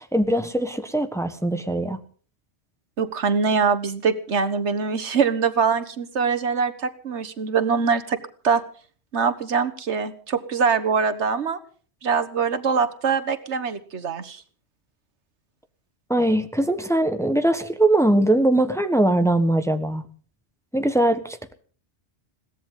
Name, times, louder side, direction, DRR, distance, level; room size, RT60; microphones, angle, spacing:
voice 1, 0.0-2.0 16.1-20.0 20.7-21.5, right 1 dB, 5° left, 8 dB, 1.3 m, -21 dB
voice 2, 3.0-8.2 8.4-8.6 9.1-11.6 12.0-14.4, right 5 dB, 85° right, 12 dB, 1.6 m, -23 dB
22.0 x 17.0 x 3.8 m, 0.42 s
omnidirectional pair, 1.1 m